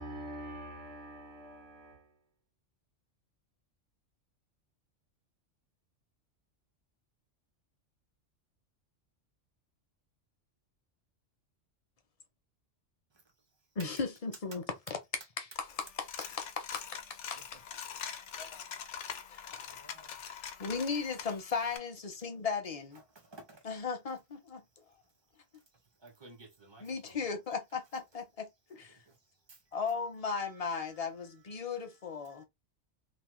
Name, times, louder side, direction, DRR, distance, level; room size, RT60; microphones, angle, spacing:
voice 1, 0.0-2.1, right 1 dB, 65° right, 1.0 m, -45 dB
voice 2, 13.8-17.6 18.4-18.6 19.3-19.7 20.6-23.0 23.6-24.6 26.8-29.0 29.7-32.4, left 5 dB, 45° left, 0.5 m, -37 dB
Coin (dropping), 15.6-21.8, left 8 dB, 75° left, 0.9 m, -44 dB
voice 3, 19.7-20.2 22.9-23.7 25.7-27.2 28.7-29.2 29.5-29.6 30.3-31.1 31.6-31.7 32.3-32.4, right 3 dB, 35° right, 0.4 m, -56 dB
3.0 x 2.0 x 3.0 m
omnidirectional pair, 1.2 m